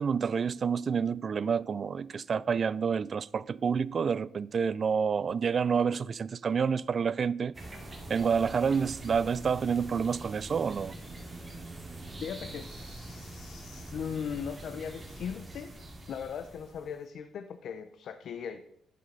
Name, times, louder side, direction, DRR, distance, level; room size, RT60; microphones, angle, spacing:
voice 1, 0.0-7.5 8.1-10.9, right 6 dB, 45° right, 0.3 m, -28 dB
sound 1, 7.5-17.0, right 1 dB, 20° right, 2.2 m, -44 dB
voice 2, 12.2-15.7 16.1-18.6, left 7 dB, 65° left, 0.6 m, -39 dB
11.0 x 5.5 x 5.4 m
cardioid pair, 90°, 0 cm